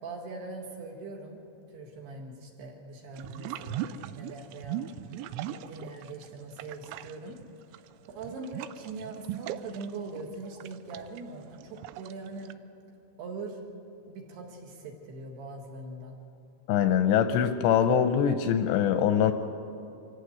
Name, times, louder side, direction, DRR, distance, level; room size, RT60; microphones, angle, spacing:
voice 1, 0.0-1.4 1.7-4.8 5.4-7.4 8.2-12.5 13.2-13.6 14.1-16.2, right 3 dB, 60° right, 1 dB, 3.5 m, -41 dB
sound 1, 3.2-6.3 6.5-12.5, right 11 dB, 80° right, 2.7 m, -39 dB
voice 2, 16.7-19.3, left 8 dB, 80° left, 8 dB, 2.6 m, -23 dB
25.5 x 15.0 x 8.1 m, 2.8 s
omnidirectional pair, 5.7 m